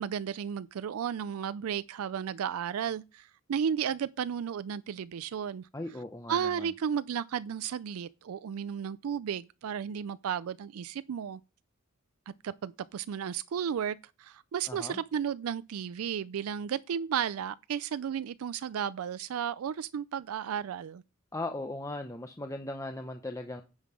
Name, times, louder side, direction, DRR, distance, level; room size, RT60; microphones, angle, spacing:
voice 1, 0.0-5.7 6.3-11.4 12.3-21.0, right 8 dB, 90° right, 0.4 m, -33 dB
voice 2, 5.7-6.7 14.7-15.0 21.3-23.6, left 2 dB, 15° left, 0.6 m, -38 dB
9.6 x 5.6 x 4.8 m
head